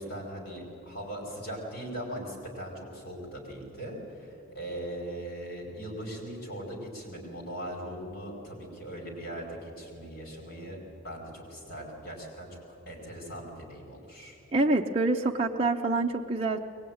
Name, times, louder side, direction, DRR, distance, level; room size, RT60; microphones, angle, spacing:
voice 1, 0.0-10.8 11.0-14.4, right 1 dB, 50° left, 0 dB, 5.4 m, -40 dB
voice 2, 14.5-16.6, right 2 dB, 30° right, 0 dB, 0.7 m, -26 dB
22.5 x 20.0 x 9.5 m, 2.7 s
head